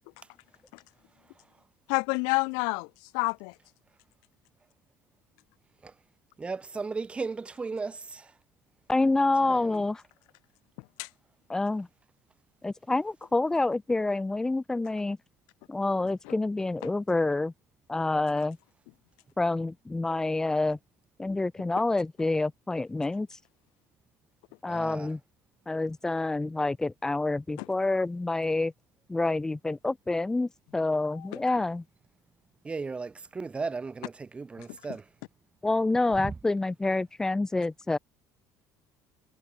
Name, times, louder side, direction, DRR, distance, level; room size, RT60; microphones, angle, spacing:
voice 1, 1.9-3.6 10.8-11.1 16.2-16.3 16.8-16.9 27.6-27.7 31.0-31.4 34.6-34.8, left 37 dB, 80° left, 2.1 m, -30 dB
voice 2, 6.4-8.3 9.5-9.8 24.7-25.1 32.6-35.0 36.2-36.3, right 4 dB, 15° right, 4.2 m, -36 dB
voice 3, 8.9-10.0 11.5-11.9 12.6-15.2 15.7-17.5 17.9-18.6 19.4-20.8 21.2-23.4 24.6-25.2 25.7-28.7 29.1-31.8 35.6-38.0, left 2 dB, 10° left, 0.4 m, -27 dB
cardioid pair, 145°, 7 cm